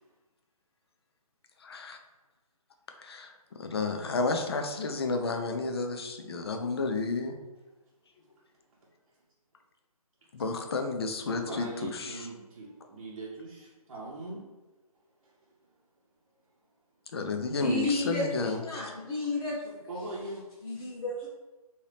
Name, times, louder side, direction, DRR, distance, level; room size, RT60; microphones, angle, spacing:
voice 1, 1.6-2.0 3.0-3.3 3.6-7.4 10.3-12.2 17.1-18.9, left 3 dB, 40° left, 5 dB, 0.4 m, -31 dB
voice 2, 11.3-14.4 15.2-15.5 19.9-20.9, right 2 dB, 50° right, -7 dB, 0.7 m, -41 dB
voice 3, 17.6-19.8 20.6-21.3, left 2 dB, 65° left, -6 dB, 1.0 m, -32 dB
2.8 x 2.7 x 3.3 m, 1.1 s
hypercardioid pair, 160°, 19 cm